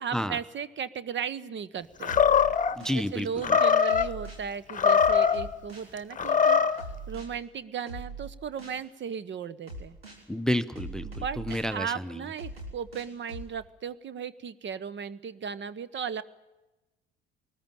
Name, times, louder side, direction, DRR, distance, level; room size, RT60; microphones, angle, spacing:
voice 1, 0.0-2.2 2.9-10.0 11.0-11.4 11.7-16.2, right 7 dB, 40° right, 16 dB, 1.2 m, -36 dB
Animal, 2.0-2.7 3.4-4.1 4.7-5.4 6.1-6.8, left 6 dB, 25° left, 1.3 m, -22 dB
sound 1, 2.1-3.1 3.9-4.5 5.0-5.9 6.8-7.3 7.9-8.8 9.7-10.2 10.8-11.7 12.4-13.5, right 2 dB, 90° right, 3.6 m, -41 dB
voice 2, 2.8-3.3 10.3-12.2, equal, ahead, 17 dB, 0.8 m, -30 dB
21.0 x 20.0 x 9.1 m, 1.0 s
figure-of-eight pair, 55°, 29 cm